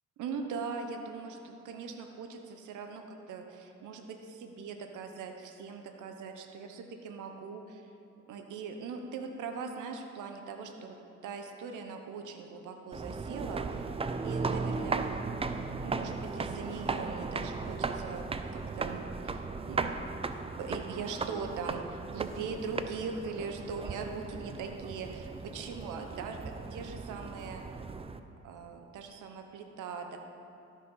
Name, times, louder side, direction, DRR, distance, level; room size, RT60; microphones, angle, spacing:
voice 1, 0.2-7.9 8.3-10.9 11.2-14.0 14.2-15.1 15.8-19.9 20.6-27.6 28.4-30.2, right 5 dB, 80° right, 5 dB, 0.9 m, -41 dB
sound 1, 12.9-28.2, right 4 dB, 20° right, 0.5 m, -36 dB
13.0 x 6.2 x 5.6 m, 2.7 s
cardioid pair, 90°, 30 cm